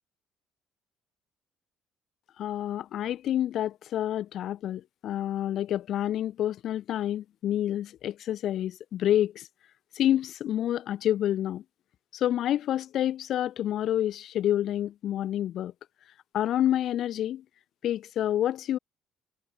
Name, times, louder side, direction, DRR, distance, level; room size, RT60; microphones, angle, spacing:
voice 1, 2.4-9.5 10.0-11.6 12.1-15.7 16.3-17.4 17.8-18.8, left 11 dB, 50° left, 2.9 m, -28 dB
cardioid pair, 175°, 0 cm